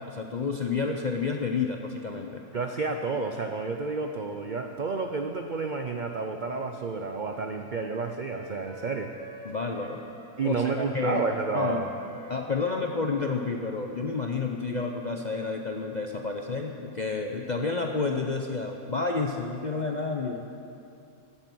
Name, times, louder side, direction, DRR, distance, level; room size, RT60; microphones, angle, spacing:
voice 1, 0.0-2.4 9.4-10.0 10.4-11.2 11.5-11.8 12.3-20.5, left 4 dB, 55° left, 2 dB, 0.5 m, -30 dB
voice 2, 2.5-9.1 10.4-11.9, right 4 dB, 75° right, 5 dB, 0.4 m, -30 dB
Wind instrument woodwind instrument, 6.7-14.5, right 1 dB, 20° right, 1.1 m, -47 dB
16.0 x 8.8 x 6.2 m, 2.6 s
omnidirectional pair, 1.7 m